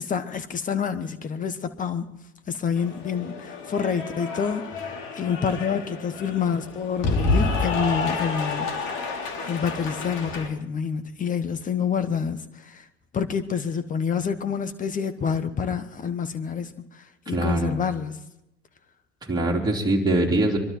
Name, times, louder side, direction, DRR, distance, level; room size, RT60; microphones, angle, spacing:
voice 1, 0.0-2.1 2.5-8.7 9.5-12.8 13.1-18.2, left 7 dB, 20° left, 1.4 m, -28 dB
Cheering / Applause, 2.8-10.5, left 3 dB, 50° left, 2.9 m, -29 dB
voice 2, 17.3-17.7 19.3-20.6, right 1 dB, 10° right, 3.6 m, -22 dB
25.0 x 12.0 x 4.5 m
hypercardioid pair, 100°, 35 cm